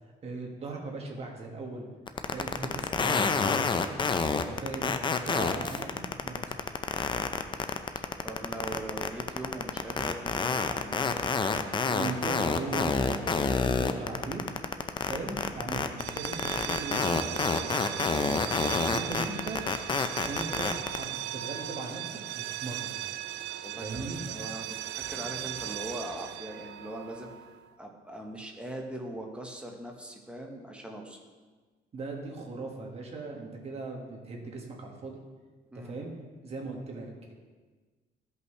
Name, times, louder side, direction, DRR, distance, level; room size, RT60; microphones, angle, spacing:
voice 1, 0.2-1.9 2.3-3.5 4.3-6.8 11.9-14.5 15.1-19.6 20.2-22.9 23.8-24.2 31.9-35.2 35.7-36.1 36.4-37.3, right 3 dB, 40° right, 0 dB, 1.9 m, -39 dB
sound 1, 2.1-21.0, left 5 dB, 30° left, 0.6 m, -28 dB
voice 2, 8.2-11.4 23.3-27.3 27.8-31.2 35.7-36.0, right 1 dB, 5° right, 1 dB, 1.3 m, -41 dB
sound 2, 15.9-27.6, right 14 dB, 85° right, 0.4 m, -38 dB
14.5 x 5.5 x 3.3 m, 1.4 s
cardioid pair, 110°, 17 cm